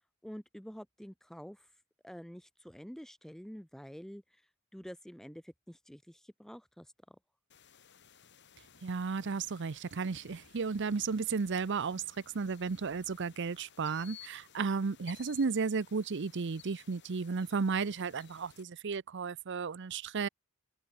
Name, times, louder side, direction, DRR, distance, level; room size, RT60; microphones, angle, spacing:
voice 1, 0.2-1.7 2.0-4.4 4.7-7.2, equal, ahead, 0.7 m, -48 dB
sound 1, 7.5-18.6, left 8 dB, 55° left, 3.7 m, -58 dB
voice 2, 8.8-12.0 12.3-20.3, right 5 dB, 55° right, 0.6 m, -34 dB
open air
head